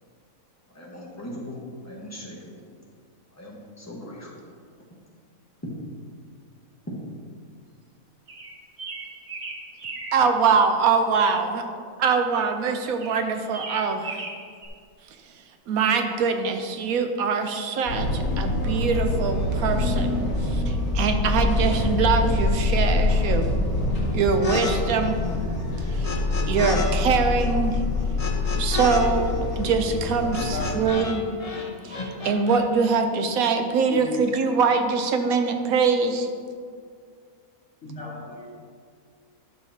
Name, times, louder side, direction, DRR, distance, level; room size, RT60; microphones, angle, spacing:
voice 1, 0.7-2.6 3.3-4.4 5.6-5.7 6.9-7.0, equal, 10° left, -4 dB, 1.3 m, -39 dB
sound 1, 8.3-10.2 13.0-14.7, right 3 dB, 45° right, 1.3 m, -36 dB
voice 2, 10.1-11.6 12.0-14.2 15.7-23.5 24.1-25.2 25.8-26.2 26.5-27.8 28.6-31.2 31.8-36.3, right 5 dB, 75° right, 6 dB, 1.1 m, -23 dB
sound 2, 17.9-30.9, left 2 dB, 80° left, 3.0 m, -25 dB
sound 3, 24.4-24.7 25.0-26.9 27.1-31.2 31.4-32.6, left 3 dB, 35° left, 0.7 m, -32 dB
voice 3, 30.2-30.7 33.6-34.1 37.8-38.5, left 3 dB, 60° left, -4 dB, 1.9 m, -37 dB
11.0 x 6.7 x 2.8 m, 2.1 s
omnidirectional pair, 1.5 m